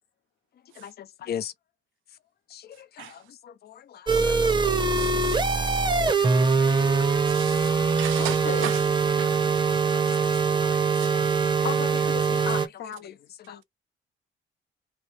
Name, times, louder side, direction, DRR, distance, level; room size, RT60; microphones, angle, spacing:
voice 1, 0.8-1.5 2.5-5.3 5.8-7.1 7.3-7.4 9.7-10.4 10.7-10.8 11.1-11.5 12.4-12.5 13.1-13.2 13.5-13.6, left 9 dB, 55° left, 0.5 m, -42 dB
sound 1, 4.1-12.7, right 4 dB, 25° right, 0.7 m, -23 dB
voice 2, 4.9-5.6 7.3-8.8 9.2-9.5 11.0-11.1, right 13 dB, 85° right, 0.5 m, -37 dB
voice 3, 8.2-8.7 11.6-13.2 13.5-13.6, left 7 dB, 75° left, 0.9 m, -35 dB
2.9 x 2.1 x 3.0 m
cardioid pair, 90°, 20 cm